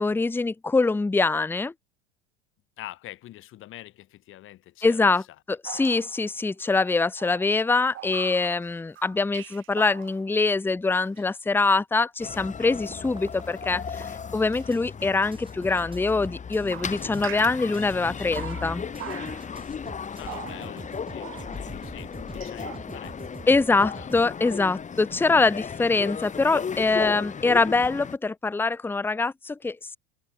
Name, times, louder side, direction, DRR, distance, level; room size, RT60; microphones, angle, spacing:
voice 1, 0.0-1.7 4.8-5.2 5.5-18.8 23.5-30.0, left 3 dB, 5° left, 0.9 m, -24 dB
voice 2, 2.8-5.1 5.7-5.9 16.6-17.2 20.1-23.2 24.0-24.1, left 14 dB, 45° left, 2.2 m, -45 dB
sound 1, 5.6-6.4 7.2-10.4 11.2-11.3 14.3-14.7 15.7-16.1 16.7-17.9 18.4-19.7 20.2-21.8 22.3-22.8, right 14 dB, 40° right, 2.1 m, -42 dB
sound 2, 12.2-28.2, left 6 dB, 25° left, 3.8 m, -36 dB
sound 3, 12.8-14.1 14.6-24.2, right 4 dB, 15° right, 6.7 m, -44 dB
hypercardioid pair, 80°, 30 cm